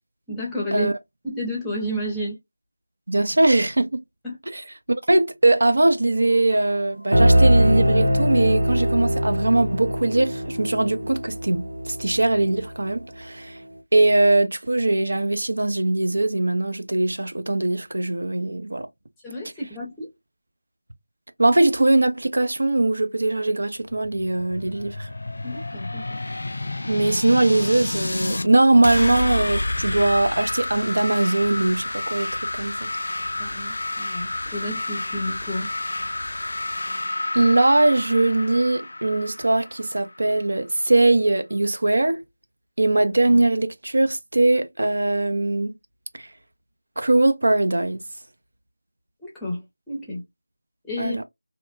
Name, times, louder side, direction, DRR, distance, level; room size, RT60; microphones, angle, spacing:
voice 1, 0.3-0.9 1.2-2.4 4.2-4.4 19.2-20.1 25.4-26.1 33.4-35.7 49.2-50.2 50.8-51.2, left 1 dB, 5° left, 0.6 m, -31 dB
voice 2, 3.1-3.9 4.5-4.6 5.1-13.6 13.9-18.9 21.4-25.1 26.9-32.9 37.3-42.2 42.8-45.7 46.1-46.3 47.0-48.0 51.0-51.2, right 2 dB, 65° right, 0.5 m, -21 dB
sound 1, 7.1-12.7, equal, 80° right, 0.9 m, -21 dB
sound 2, 23.8-28.5 28.8-40.4, left 2 dB, 60° left, 0.3 m, -30 dB
2.9 x 2.2 x 2.4 m
figure-of-eight pair, 175°, 0 cm